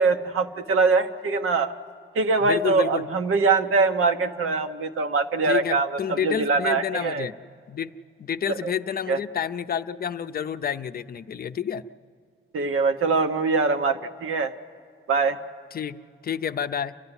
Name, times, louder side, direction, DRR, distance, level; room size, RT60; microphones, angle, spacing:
voice 1, 0.0-1.7 2.1-7.3 8.6-8.7 9.1-9.2 12.5-14.5 15.1-15.4, right 4 dB, 90° right, 7 dB, 1.1 m, -23 dB
voice 2, 2.4-3.0 5.4-7.4 7.7-7.9 8.2-11.8 15.7-16.9, left 8 dB, 45° left, 11 dB, 0.5 m, -29 dB
29.0 x 12.5 x 9.8 m, 2.2 s
wide cardioid pair, 170°, 21 cm